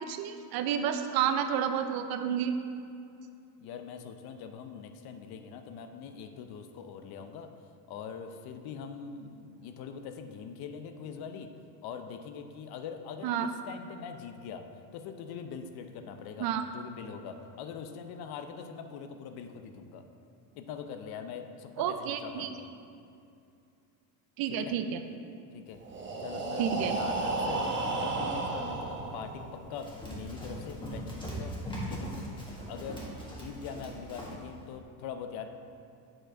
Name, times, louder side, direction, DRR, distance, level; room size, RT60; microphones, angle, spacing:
voice 1, 0.0-2.5 13.2-13.5 16.4-16.6 21.8-22.5 24.4-25.0 26.6-27.0, right 8 dB, 55° right, 8 dB, 0.6 m, -30 dB
voice 2, 3.6-7.5 7.9-11.5 11.8-14.6 14.9-20.0 20.6-22.7 24.5-24.8 25.5-25.8 26.2-27.7 27.9-31.6 31.8-32.3 32.7-35.5, left 6 dB, 60° left, 7 dB, 0.7 m, -43 dB
Breathing, 25.8-29.7, right 3 dB, 25° right, 0.9 m, -33 dB
Run, 29.7-34.4, equal, 10° left, 1.4 m, -40 dB
7.7 x 4.5 x 4.4 m, 2.5 s
cardioid pair, 115°, 44 cm